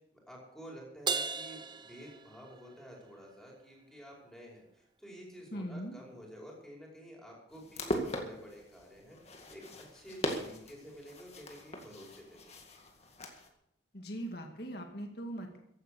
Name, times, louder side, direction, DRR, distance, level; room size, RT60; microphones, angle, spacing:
voice 1, 0.1-12.6, equal, ahead, -3 dB, 5.3 m, -51 dB
Crash cymbal, 1.1-2.8, right 5 dB, 25° right, 0.7 m, -36 dB
voice 2, 5.5-6.0 13.9-15.6, right 1 dB, 55° left, 3 dB, 2.2 m, -40 dB
sound 1, 7.5-13.5, equal, 35° left, 2.0 m, -40 dB
15.5 x 11.0 x 6.9 m, 0.78 s
head